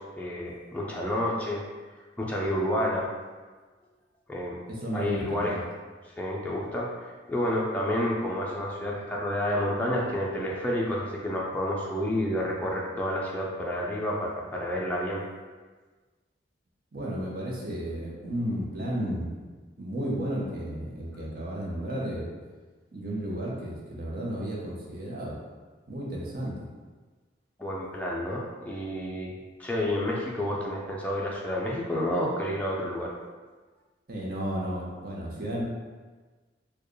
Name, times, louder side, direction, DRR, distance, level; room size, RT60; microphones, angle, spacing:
voice 1, 0.0-1.6 2.2-3.1 4.3-4.5 4.9-5.6 6.0-15.2 27.6-33.1, left 1 dB, 10° left, -4 dB, 0.4 m, -30 dB
voice 2, 4.7-5.6 16.9-22.3 22.9-25.4 25.9-26.5 34.1-35.6, right 1 dB, 50° right, -4 dB, 0.8 m, -33 dB
4.5 x 2.3 x 3.1 m, 1.4 s
head